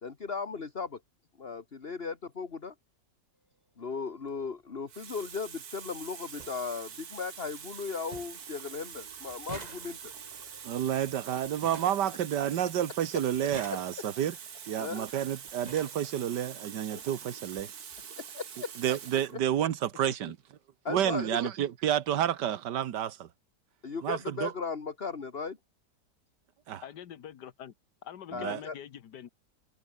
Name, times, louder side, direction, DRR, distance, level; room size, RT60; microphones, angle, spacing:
voice 1, 0.0-1.0 1.4-2.7 3.8-10.1 14.8-15.1 16.9-17.0 18.2-18.7 20.8-21.4 23.8-25.6 28.3-28.7, left 5 dB, 35° left, 1.9 m, -37 dB
sound 1, 3.3-4.2 5.3-5.8 6.7-11.9, left 1 dB, 10° left, 4.6 m, -62 dB
Water tap faucet, 4.1-4.3 4.9-19.4 20.3-20.5, right 7 dB, 60° right, 2.0 m, -45 dB
sound 2, 4.3-4.5 5.7-5.8 6.0-6.1 6.4-6.6 7.0-7.5 7.8-7.9 8.1-8.5 8.8-12.7 13.3-14.3 15.1-15.2 15.5-16.1 17.0-17.1 17.4-17.6 17.9-18.0, right 3 dB, 25° right, 1.7 m, -48 dB
voice 2, 10.6-14.4 14.7-17.7 18.8-20.4 20.9-23.3 24.0-24.5 26.7-26.8 28.3-28.6, right 10 dB, 80° right, 1.7 m, -30 dB
voice 3, 26.8-27.7 28.0-29.3, left 9 dB, 75° left, 1.8 m, -45 dB
omnidirectional pair, 1.8 m